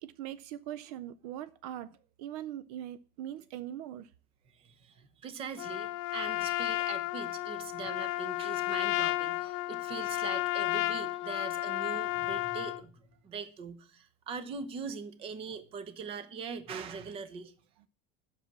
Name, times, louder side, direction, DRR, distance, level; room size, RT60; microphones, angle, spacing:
voice 1, 0.0-4.1 17.8-17.9, right 12 dB, 70° right, 0.4 m, -41 dB
voice 2, 4.5-12.9 13.2-17.5, right 5 dB, 25° right, 0.8 m, -42 dB
Trumpet, 5.6-12.8, left 19 dB, 60° left, 0.4 m, -32 dB
sound 1, 12.0-13.5, left 3 dB, ahead, 2.3 m, -56 dB
7.9 x 6.2 x 7.2 m
cardioid pair, 180°, 20 cm